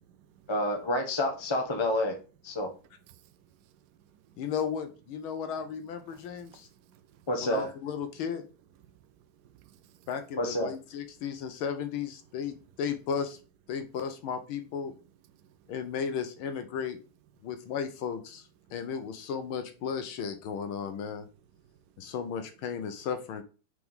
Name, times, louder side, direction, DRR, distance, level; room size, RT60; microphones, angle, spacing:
voice 1, 0.5-2.2 2.4-2.7 7.3-7.7 10.4-10.7, left 1 dB, 20° left, 0.8 m, -28 dB
voice 2, 3.1-3.4 3.7-4.4 6.1-7.3 8.8-9.0 9.3-10.1 15.3-15.7 21.6-21.8 22.0-22.1, right 10 dB, 70° right, 1.0 m, -60 dB
voice 3, 4.4-6.7 7.4-8.4 10.1-13.4 13.7-14.9 15.7-17.0 17.4-21.3 22.0-23.4, left 7 dB, 80° left, 1.6 m, -35 dB
4.9 x 4.7 x 5.5 m
omnidirectional pair, 2.2 m